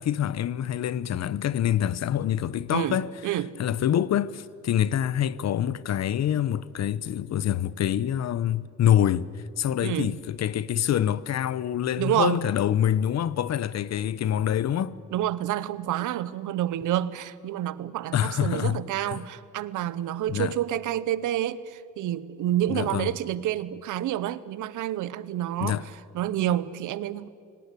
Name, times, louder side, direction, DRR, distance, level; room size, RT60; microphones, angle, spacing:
voice 1, 0.0-3.1 3.6-9.3 9.6-15.0 18.1-18.8 19.1-19.2 20.3-20.5 22.7-23.1 25.6-25.8, left 10 dB, 60° left, 0.9 m, -26 dB
voice 2, 2.7-3.5 9.8-10.2 12.0-12.4 15.1-25.8 26.1-27.3, right 12 dB, 85° right, 1.0 m, -28 dB
29.0 x 18.5 x 8.4 m
cardioid pair, 90°, 30 cm